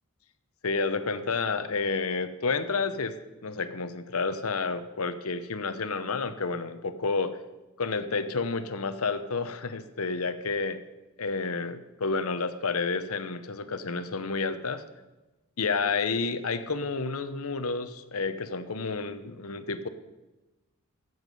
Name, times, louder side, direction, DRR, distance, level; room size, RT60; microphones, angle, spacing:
voice 1, 0.6-7.4 7.8-10.8 11.2-14.8 15.6-19.9, left 4 dB, 85° left, 11 dB, 0.9 m, -30 dB
14.5 x 8.1 x 5.4 m, 1.1 s
head